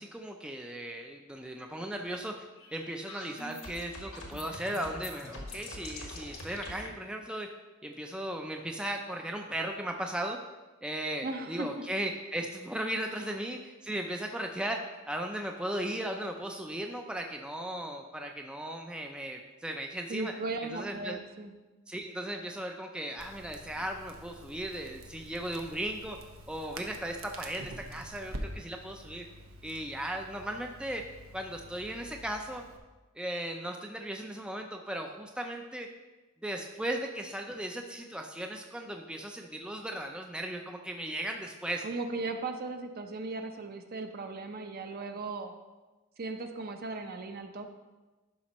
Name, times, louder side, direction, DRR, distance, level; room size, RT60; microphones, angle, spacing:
voice 1, 0.0-2.5 2.7-7.5 7.8-10.4 10.8-20.3 20.6-21.2 21.9-26.2 26.5-29.3 29.6-31.1 31.3-32.7 33.2-35.9 36.4-41.9, right 1 dB, 5° right, 3 dB, 0.4 m, -37 dB
sound 1, 2.6-6.9, left 2 dB, 85° left, 1.5 m, -44 dB
voice 2, 11.2-11.7 13.2-13.3 20.1-21.5 41.8-45.6 46.2-47.7, right 3 dB, 45° right, 6 dB, 0.6 m, -37 dB
Crackle, 23.2-32.8, right 1 dB, 85° right, 0.9 m, -47 dB
11.5 x 5.2 x 3.0 m, 1.2 s
head